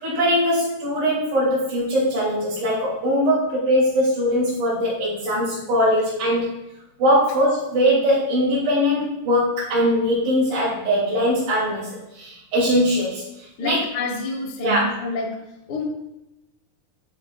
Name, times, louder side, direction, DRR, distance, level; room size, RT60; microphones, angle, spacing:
voice 1, 0.0-6.5 7.0-13.2 13.6-13.8 14.6-14.9, equal, 70° right, -12 dB, 5.2 m, -21 dB
voice 2, 13.6-15.4 15.7-15.8, left 2 dB, 80° left, 1 dB, 0.9 m, -28 dB
12.0 x 7.4 x 2.6 m, 0.92 s
omnidirectional pair, 4.2 m